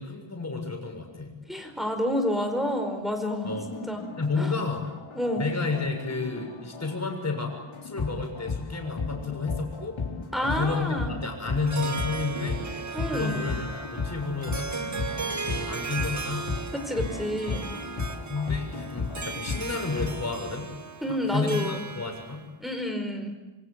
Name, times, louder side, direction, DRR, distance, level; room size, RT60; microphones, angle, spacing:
voice 1, 0.0-1.3 3.4-3.7 4.2-4.9 5.4-10.0 10.4-12.6 13.1-14.7 15.5-16.6 18.3-20.7 21.3-22.4, left 4 dB, 35° left, 3 dB, 6.8 m, -31 dB
voice 2, 1.5-4.1 4.4-4.5 5.1-5.4 10.3-11.1 12.9-13.5 16.7-17.8 21.0-21.8 22.6-23.3, equal, ahead, 5 dB, 4.9 m, -29 dB
sound 1, 3.5-20.2, left 4 dB, 75° left, 4.3 m, -35 dB
Harp, 11.5-22.4, right 4 dB, 35° right, 1.7 m, -36 dB
26.5 x 25.0 x 8.3 m, 1.1 s
wide cardioid pair, 145°, 48 cm